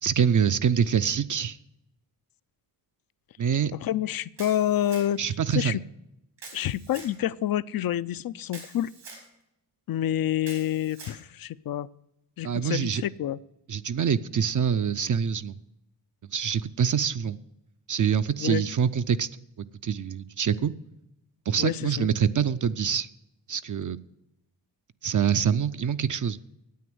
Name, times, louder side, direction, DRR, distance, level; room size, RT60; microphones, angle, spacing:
voice 1, 0.0-1.6 3.4-3.7 5.2-5.8 12.4-13.0 13.7-15.6 16.3-17.4 17.9-19.3 19.8-20.7 21.5-23.1 23.5-24.0 25.0-26.4, right 7 dB, 45° right, 11 dB, 0.6 m, -25 dB
voice 2, 3.8-5.2 5.5-5.8 6.5-8.9 9.9-11.9 12.4-13.4 18.4-18.6 21.6-22.1, left 12 dB, 55° left, 19 dB, 0.5 m, -28 dB
Camera, 4.4-5.3 6.4-7.1 8.5-9.3 10.4-11.2, right 4 dB, 90° right, 4.5 m, -45 dB
9.4 x 8.7 x 7.8 m, 0.85 s
cardioid pair, 65°, 43 cm